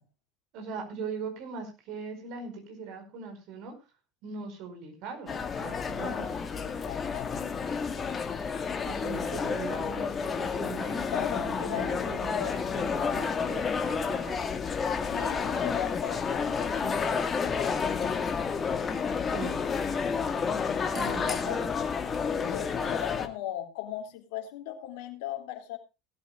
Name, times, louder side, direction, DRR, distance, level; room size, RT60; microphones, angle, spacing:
voice 1, 0.5-3.7 4.2-6.4 8.8-14.4 19.3-19.6 20.9-21.6, right 5 dB, 55° right, 5 dB, 5.0 m, -40 dB
sound 1, 5.3-23.3, left 6 dB, 30° left, 1.9 m, -30 dB
voice 2, 6.5-7.7 8.0-8.1 11.1-12.5 15.1-18.2 21.3-21.6 22.3-25.8, left 12 dB, 65° left, 4 dB, 3.0 m, -38 dB
19.0 x 13.5 x 2.4 m, 0.28 s
figure-of-eight pair, 75°, 0 cm